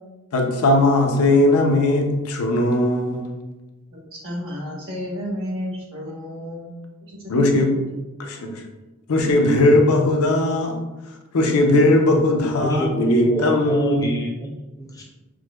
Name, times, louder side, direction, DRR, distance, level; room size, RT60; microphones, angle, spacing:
voice 1, 0.3-3.4 7.3-7.7 8.2-8.6 9.1-10.8 11.3-14.1, left 1 dB, 75° left, 2 dB, 0.5 m, -18 dB
voice 2, 4.1-6.7 7.1-7.2, equal, 60° right, -4 dB, 1.2 m, -31 dB
voice 3, 12.6-15.1, equal, 15° left, -1 dB, 0.4 m, -28 dB
4.7 x 2.1 x 2.2 m, 1.1 s
head